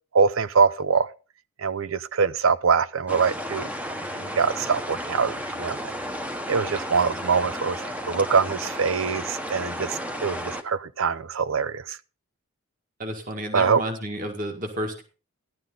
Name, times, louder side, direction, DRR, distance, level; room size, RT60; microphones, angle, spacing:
voice 1, 0.1-1.1 1.6-3.7 4.1-5.8 6.5-12.0 13.5-13.8, right 5 dB, 65° right, 0.6 m, -24 dB
sound 1, 3.1-10.6, equal, 5° right, 0.9 m, -33 dB
voice 2, 13.0-15.0, right 1 dB, 40° right, 1.8 m, -31 dB
14.0 x 11.0 x 3.8 m
head